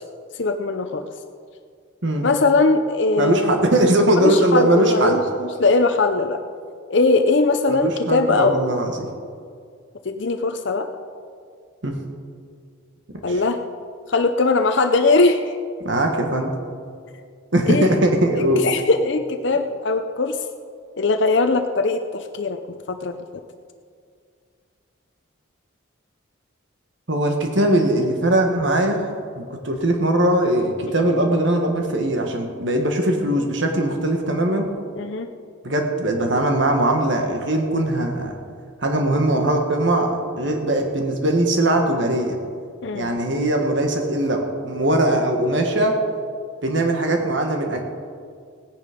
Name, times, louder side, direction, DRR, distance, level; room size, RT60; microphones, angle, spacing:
voice 1, 0.3-1.1 2.2-3.6 4.2-6.4 6.9-8.6 10.0-10.9 13.2-13.6 14.1-15.6 17.7-18.1 18.6-20.4 21.0-23.2 35.0-35.3 42.8-43.1, left 3 dB, 60° left, 7 dB, 0.6 m, -20 dB
voice 2, 3.2-5.2 7.7-9.1 11.8-12.0 13.3-13.4 15.8-16.5 17.5-18.7 27.1-34.7 35.6-38.3 38.8-42.4 42.9-46.0 46.6-47.8, right 1 dB, 60° right, 3 dB, 1.6 m, -20 dB
17.5 x 10.0 x 5.2 m, 2.2 s
head